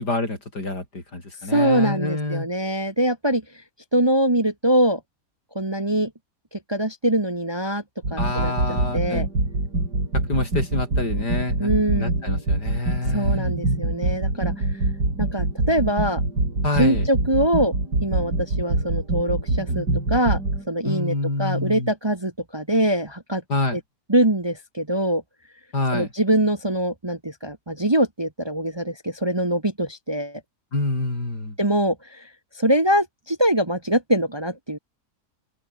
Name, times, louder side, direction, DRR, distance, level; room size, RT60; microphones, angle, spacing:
voice 1, 0.0-2.5 8.2-9.3 10.1-13.5 16.6-17.1 20.8-21.9 23.5-23.8 25.7-26.1 30.7-31.6, left 2 dB, 80° left, 7.3 m, -27 dB
voice 2, 1.5-3.4 3.9-5.0 5.5-6.1 6.7-7.8 8.1-9.3 11.6-12.1 13.1-14.6 15.2-16.2 16.8-17.7 18.0-20.4 20.7-23.4 23.7-23.8 24.1-25.2 25.9-30.4 31.6-32.3 32.6-34.8, right 1 dB, 15° right, 1.3 m, -23 dB
sound 1, 8.0-20.6, right 2 dB, 75° right, 7.2 m, -24 dB
open air
omnidirectional pair, 1.8 m